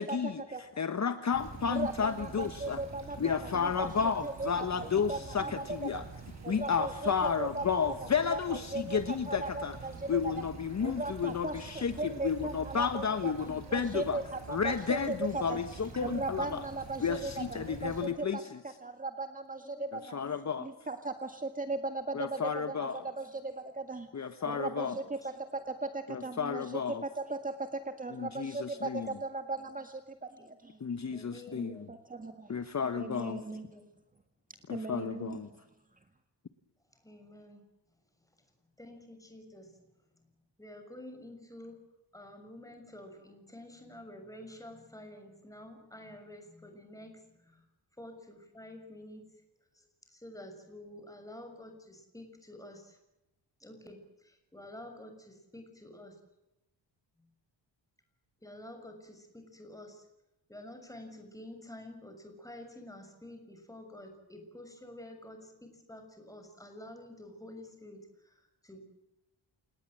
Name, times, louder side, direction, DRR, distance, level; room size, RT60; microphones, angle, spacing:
voice 1, 0.0-2.8 3.2-6.0 6.5-9.8 10.1-14.2 14.5-16.7 17.0-18.6 19.9-20.7 22.1-23.0 24.1-25.0 26.1-27.0 28.1-29.2 30.8-31.9 32.5-33.4 34.7-35.5, left 6 dB, 40° left, 10 dB, 1.3 m, -32 dB
Stream / Trickle dribble, 1.3-18.1, right 4 dB, 35° right, 7.9 m, -47 dB
voice 2, 1.7-3.2 3.4-3.9 4.2-5.6 5.9-6.1 6.4-9.0 9.3-10.3 10.8-15.6 16.0-20.2 20.6-22.4 22.7-22.8 23.2-24.1 24.5-27.5 28.0-30.0 30.4-30.8 31.5-32.5 32.9-33.7 34.7-35.4, right 3 dB, 20° right, 7 dB, 1.8 m, -38 dB
voice 3, 19.6-20.1 22.3-22.6 24.4-24.9 28.8-29.1 30.4-30.5 31.0-31.9 33.2-33.9 34.9-35.5 37.0-37.6 38.8-39.7 40.6-41.8 42.1-47.6 48.0-49.3 49.8-53.0 53.6-56.1 58.4-60.0 60.5-68.8, left 1 dB, 5° left, 5 dB, 6.5 m, -49 dB
29.0 x 19.5 x 7.7 m, 0.92 s
wide cardioid pair, 140°, 45 cm